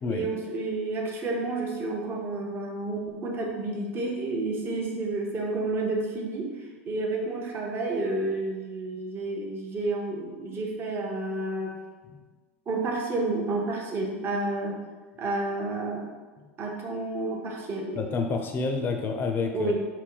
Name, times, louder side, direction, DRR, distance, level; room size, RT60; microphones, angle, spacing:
voice 1, 0.1-11.8 12.7-14.8 15.2-16.1 16.6-18.0 19.5-19.8, right 2 dB, 35° right, -1 dB, 0.8 m, -30 dB
voice 2, 18.0-19.7, left 4 dB, 30° left, 4 dB, 0.6 m, -28 dB
4.3 x 2.1 x 3.9 m, 1.4 s
hypercardioid pair, 90°, 7 cm